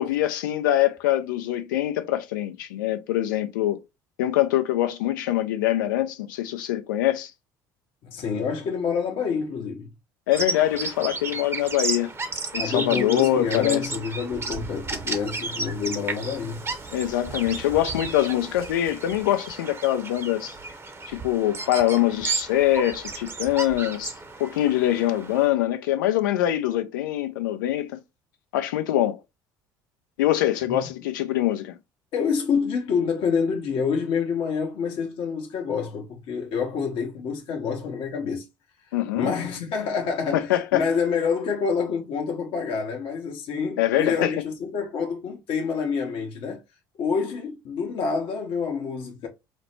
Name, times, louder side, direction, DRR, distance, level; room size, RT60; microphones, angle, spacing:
voice 1, 0.0-3.8 4.2-7.3 10.3-12.1 12.5-13.8 16.9-20.6 21.1-24.1 24.4-28.0 28.5-29.2 30.2-31.8 38.9-39.3 40.3-40.8 43.8-44.3, left 13 dB, 85° left, 0.5 m, -24 dB
voice 2, 8.0-9.9 12.6-16.6 30.7-30.9 32.1-38.5 39.2-46.6 47.0-49.3, left 6 dB, 60° left, 0.8 m, -27 dB
Bird vocalization bird call bird song, 10.3-25.5, right 3 dB, 25° right, 0.7 m, -33 dB
4.0 x 2.1 x 3.2 m
hypercardioid pair, 65°, 10 cm